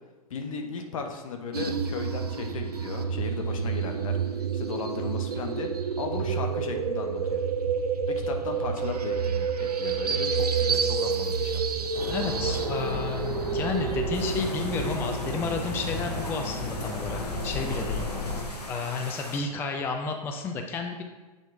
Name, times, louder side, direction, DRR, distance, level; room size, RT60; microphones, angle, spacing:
voice 1, 0.3-7.5 8.1-11.9, left 5 dB, 60° left, 4 dB, 0.9 m, -36 dB
sound 1, 1.5-18.7, right 6 dB, 80° right, 0.5 m, -30 dB
sound 2, 11.9-18.4, left 2 dB, 40° left, 1.5 m, -33 dB
voice 2, 12.1-18.4 18.7-21.0, left 4 dB, 10° left, 4 dB, 0.3 m, -32 dB
sound 3, 14.1-19.4, left 2 dB, 80° left, 1.0 m, -42 dB
7.5 x 3.0 x 4.7 m, 1.2 s
figure-of-eight pair, 110°, 20 cm